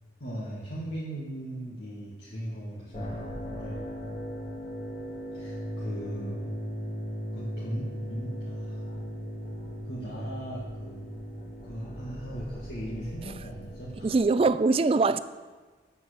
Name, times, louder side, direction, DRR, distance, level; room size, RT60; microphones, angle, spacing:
voice 1, 0.2-3.9 5.3-6.5 7.3-8.8 9.8-11.1 11.6-14.1, right 1 dB, 65° left, -7 dB, 1.8 m, -38 dB
sound 1, 2.9-14.2, equal, 35° left, 1.6 m, -37 dB
voice 2, 14.0-15.2, right 3 dB, 30° right, 14 dB, 0.3 m, -22 dB
8.3 x 7.5 x 6.6 m, 1.4 s
head